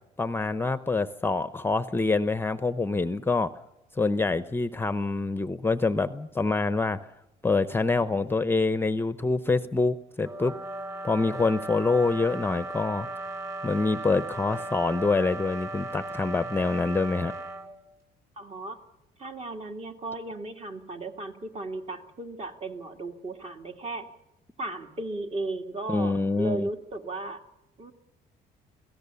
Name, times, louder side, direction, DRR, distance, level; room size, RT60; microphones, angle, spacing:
voice 1, 0.2-3.5 4.0-7.0 7.4-10.5 11.0-13.1 13.6-17.3 25.9-26.7, left 3 dB, 15° left, 12 dB, 0.8 m, -26 dB
sound 1, 10.2-17.7, right 2 dB, 20° right, 3.7 m, -37 dB
voice 2, 18.4-18.8 19.2-24.1 24.6-27.4 27.8-27.9, right 2 dB, 35° right, 5 dB, 2.3 m, -35 dB
26.0 x 17.5 x 7.0 m, 0.90 s
cardioid pair, 110°, 17 cm